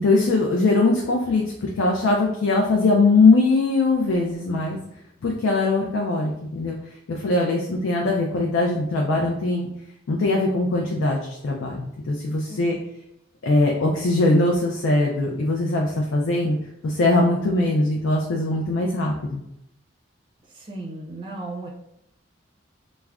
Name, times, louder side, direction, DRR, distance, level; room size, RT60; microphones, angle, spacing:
voice 1, 0.0-4.8 5.2-6.8 7.1-9.7 10.1-11.8 12.1-12.8 13.4-16.6 16.8-19.4, left 2 dB, 80° left, -1 dB, 0.4 m, -21 dB
voice 2, 20.5-21.7, right 2 dB, 25° right, -2 dB, 0.5 m, -35 dB
2.3 x 2.1 x 3.4 m, 0.80 s
head